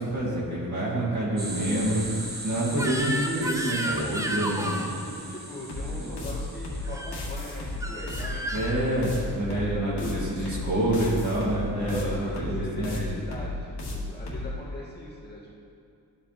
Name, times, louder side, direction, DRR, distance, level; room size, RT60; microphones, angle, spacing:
voice 1, 0.0-2.1 2.4-4.7 6.0-6.2 8.5-13.1, right 1 dB, 50° right, -7 dB, 2.4 m, -27 dB
sound 1, 1.4-9.1, right 2 dB, 25° right, 1.0 m, -40 dB
Crying sobbing / Screech, 2.7-4.9 6.8-7.2 7.8-8.8, right 1 dB, 10° right, 0.5 m, -32 dB
voice 2, 4.6-8.5 8.8-9.0 9.5-11.2 11.8-13.6 13.8-15.5, left 1 dB, 25° left, -6 dB, 1.7 m, -40 dB
sound 2, 5.7-14.5, left 2 dB, 80° left, 1.8 m, -34 dB
13.0 x 5.1 x 4.1 m, 2.4 s
wide cardioid pair, 160°, 39 cm